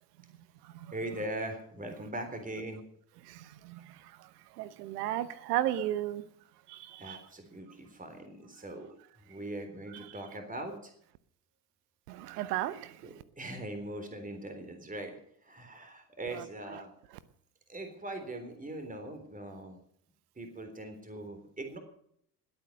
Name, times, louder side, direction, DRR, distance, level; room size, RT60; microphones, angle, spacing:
voice 1, 0.9-2.8 7.0-8.9 9.2-10.9 13.0-16.9 17.7-19.8 20.4-21.8, right 1 dB, 15° right, 3.6 m, -41 dB
voice 2, 3.2-6.2 6.7-7.2 10.1-10.2 12.1-13.0 16.3-16.8, right 13 dB, 75° right, 1.1 m, -35 dB
20.5 x 8.9 x 6.5 m
hypercardioid pair, 65°, 47 cm